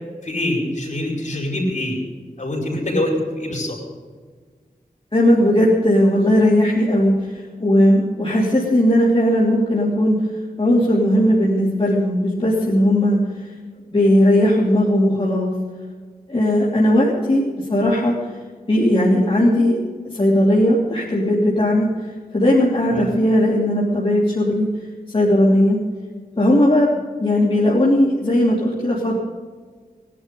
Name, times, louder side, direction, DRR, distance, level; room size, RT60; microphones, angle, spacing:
voice 1, 0.2-1.9 2.4-3.8 22.9-23.1, left 1 dB, 55° left, -1 dB, 5.0 m, -24 dB
voice 2, 5.1-10.3 10.6-13.5 13.9-15.5 16.3-18.3 18.7-19.8 20.1-24.7 25.1-25.8 26.4-29.2, left 1 dB, 40° left, -5 dB, 3.0 m, -17 dB
19.5 x 11.0 x 5.3 m, 1.5 s
wide cardioid pair, 70°, 15 cm